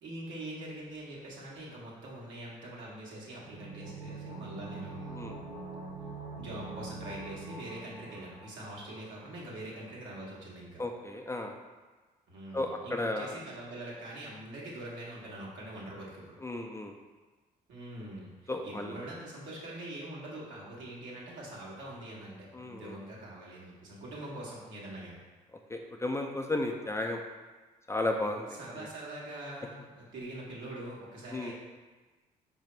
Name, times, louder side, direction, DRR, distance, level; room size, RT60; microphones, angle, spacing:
voice 1, 0.0-5.3 6.4-10.8 12.3-16.4 17.7-25.2 28.5-31.5, right 1 dB, 70° right, -5 dB, 1.2 m, -43 dB
sound 1, 3.4-9.1 9.3-9.4, right 3 dB, 85° right, 1.1 m, -43 dB
voice 2, 10.8-11.5 12.5-13.4 16.4-16.9 18.5-18.9 22.5-23.0 25.7-27.2 27.9-28.5 31.3-31.5, left 2 dB, 15° left, 2 dB, 0.4 m, -33 dB
4.8 x 2.6 x 3.2 m, 1.3 s
hypercardioid pair, 50°, 20 cm